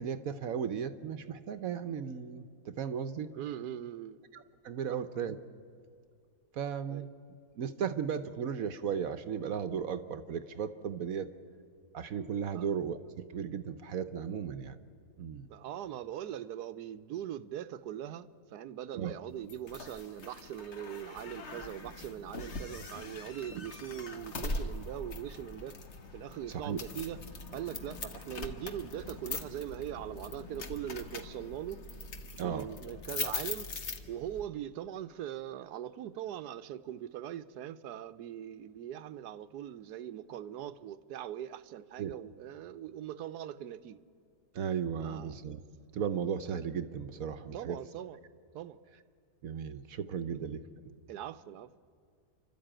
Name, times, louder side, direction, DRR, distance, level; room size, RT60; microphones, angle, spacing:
voice 1, 0.0-3.3 4.3-5.4 6.5-7.1 7.6-11.3 11.9-14.8 15.2-15.5 18.9-19.2 23.6-23.7 26.5-26.8 32.4-32.7 42.0-42.2 44.5-45.6 45.9-47.8 49.4-50.6, right 7 dB, 65° right, 11 dB, 1.1 m, -35 dB
voice 2, 3.3-4.2 4.9-5.1 6.9-7.1 12.5-12.7 15.5-25.8 26.1-27.2 27.5-31.8 32.4-33.7 34.1-44.0 45.0-45.4 47.5-48.2 48.5-48.8 50.3-50.4 51.1-51.8, right 11 dB, 80° right, 14 dB, 1.3 m, -41 dB
sound 1, 19.5-34.4, left 3 dB, 45° left, 1.4 m, -42 dB
30.0 x 12.5 x 8.9 m, 2.3 s
omnidirectional pair, 1.7 m